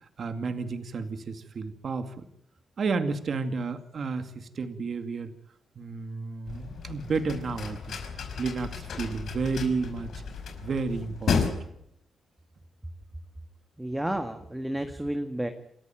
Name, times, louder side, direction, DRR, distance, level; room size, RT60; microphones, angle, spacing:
voice 1, 0.0-2.3 2.8-5.3 5.8-8.0 8.4-10.1 10.6-11.5, right 4 dB, 50° right, 9 dB, 2.2 m, -31 dB
sound 1, 6.5-11.5, left 5 dB, 65° left, 5.4 m, -33 dB
voice 2, 13.8-15.5, right 1 dB, 5° right, 6 dB, 1.7 m, -31 dB
28.5 x 14.0 x 9.1 m, 0.76 s
cardioid pair, 130°, 0 cm